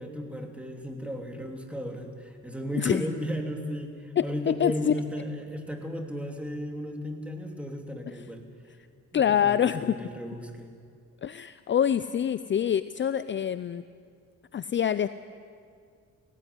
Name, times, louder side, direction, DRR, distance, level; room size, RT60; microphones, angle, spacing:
voice 1, 0.0-8.4 9.1-10.7, equal, 5° right, 3 dB, 3.0 m, -35 dB
voice 2, 4.2-4.9 9.1-9.9 11.2-13.8 14.5-15.1, left 9 dB, 40° left, 14 dB, 0.5 m, -25 dB
18.0 x 18.0 x 9.6 m, 2.2 s
cardioid pair, 90°, 30 cm